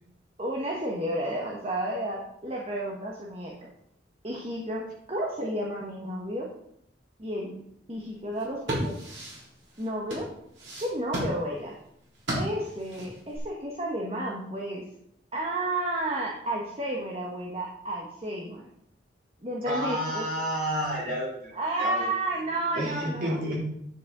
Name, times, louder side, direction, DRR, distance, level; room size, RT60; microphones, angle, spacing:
voice 1, 0.4-3.7 4.2-4.8 5.1-6.5 7.2-7.6 7.9-8.9 9.8-10.3 10.8-11.8 12.3-14.8 15.3-18.7 19.4-20.2 21.5-23.4, right 1 dB, 30° right, -1 dB, 1.4 m, -31 dB
sound 1, 8.3-13.4, equal, 80° right, 4.0 m, -35 dB
voice 2, 19.6-22.1 22.7-23.6, equal, 50° right, -3 dB, 3.1 m, -30 dB
10.0 x 8.0 x 3.9 m, 0.73 s
head